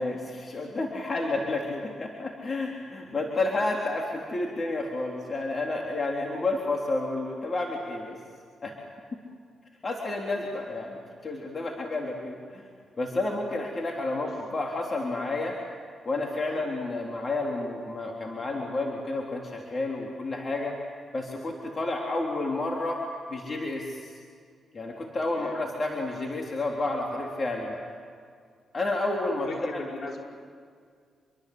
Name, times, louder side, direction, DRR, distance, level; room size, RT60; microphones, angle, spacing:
voice 1, 0.0-8.2 8.6-8.8 9.8-12.6 13.0-15.6 16.0-20.8 21.1-23.0 23.3-24.2 24.7-27.8 28.7-29.8, left 2 dB, 40° left, 0 dB, 3.7 m, -30 dB
voice 2, 25.2-25.6 28.9-30.2, left 3 dB, 60° left, 0 dB, 5.3 m, -39 dB
27.5 x 23.5 x 8.1 m, 2.1 s
supercardioid pair, 60°, 0 cm